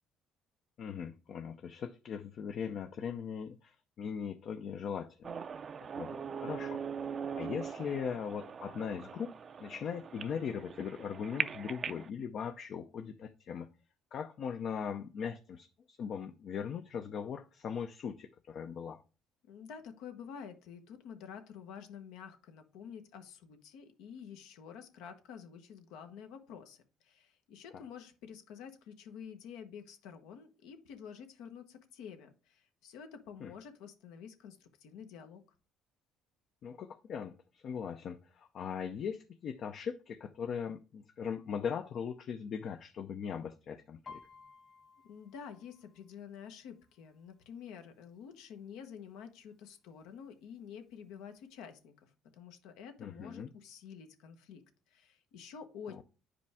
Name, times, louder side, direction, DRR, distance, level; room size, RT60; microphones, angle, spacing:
voice 1, 0.8-5.3 6.0-6.8 7.3-9.3 9.6-13.7 14.1-19.0 33.4-33.5 36.6-44.2 53.0-53.5, left 7 dB, 55° left, 0.6 m, -39 dB
sound 1, 5.2-12.1, right 6 dB, 40° right, 0.4 m, -41 dB
voice 2, 19.4-35.4 45.0-54.6 54.9-56.0, left 7 dB, 85° left, 1.1 m, -49 dB
Piano, 44.0-47.7 48.0-48.5 48.8-49.4 50.0-50.1 50.4-51.4 51.8-51.9, left 5 dB, 35° left, 1.6 m, -56 dB
9.6 x 5.0 x 3.5 m
cardioid pair, 100°, 0 cm